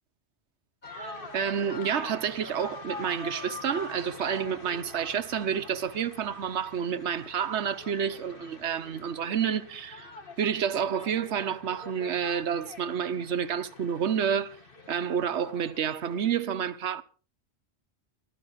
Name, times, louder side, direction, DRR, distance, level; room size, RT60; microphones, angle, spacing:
sound 1, 0.8-16.3, left 2 dB, 55° left, 2.4 m, -44 dB
voice 1, 0.9-10.1 10.4-14.6 14.9-17.0, right 8 dB, 85° right, 1.2 m, -29 dB
24.5 x 14.0 x 3.1 m
omnidirectional pair, 1.1 m